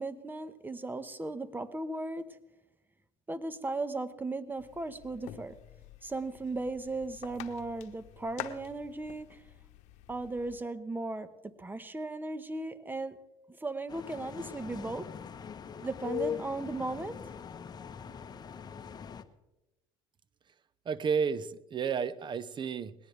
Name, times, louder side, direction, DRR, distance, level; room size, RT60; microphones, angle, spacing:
voice 1, 0.0-2.3 3.3-5.6 6.0-9.4 10.1-13.2 13.6-15.1 15.8-17.3, right 2 dB, 15° right, 12 dB, 1.2 m, -36 dB
sound 1, 4.6-10.6, left 12 dB, 70° left, 1.1 m, -48 dB
sound 2, 13.9-19.2, left 8 dB, 35° left, 1.1 m, -41 dB
voice 2, 20.9-22.9, right 6 dB, 40° right, 16 dB, 0.8 m, -31 dB
20.5 x 18.0 x 3.4 m, 0.99 s
supercardioid pair, 90°, 13 cm